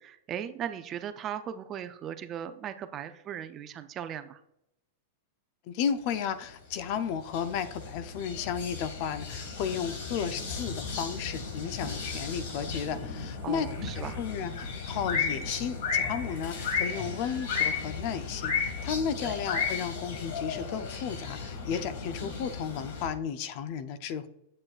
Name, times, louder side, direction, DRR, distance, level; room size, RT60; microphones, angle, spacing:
voice 1, 0.0-4.4 13.4-14.2 19.2-19.4, right 9 dB, 30° right, 10 dB, 0.4 m, -38 dB
voice 2, 5.7-24.3, left 7 dB, 50° left, 12 dB, 0.5 m, -34 dB
sound 1, 6.4-23.1, left 5 dB, 65° left, 1.8 m, -34 dB
7.6 x 7.5 x 2.4 m, 0.82 s
supercardioid pair, 145°, 0 cm